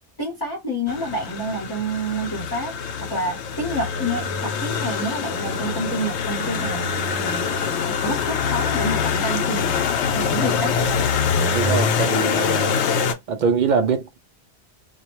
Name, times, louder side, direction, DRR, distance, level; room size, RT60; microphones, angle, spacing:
voice 1, 0.2-2.7 3.1-6.8 7.2-7.5 7.9-9.9 10.2-10.7, right 1 dB, 25° left, 0.8 m, -28 dB
sound 1, 0.9-13.1, left 6 dB, 80° left, 0.9 m, -24 dB
voice 2, 11.5-12.8 13.3-14.2, right 5 dB, 60° right, 0.5 m, -23 dB
2.3 x 2.1 x 2.9 m
omnidirectional pair, 1.1 m